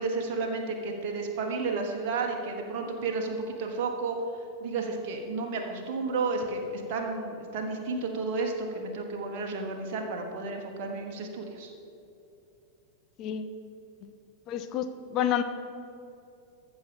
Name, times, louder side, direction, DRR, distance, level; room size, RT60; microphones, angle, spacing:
voice 1, 0.0-4.2 4.6-11.7, right 3 dB, 45° right, 2 dB, 1.4 m, -32 dB
voice 2, 13.2-13.5 14.0-14.1 14.5-15.4, left 9 dB, 35° left, 9 dB, 0.7 m, -29 dB
14.0 x 6.2 x 5.3 m, 2.7 s
figure-of-eight pair, 90°, 0 cm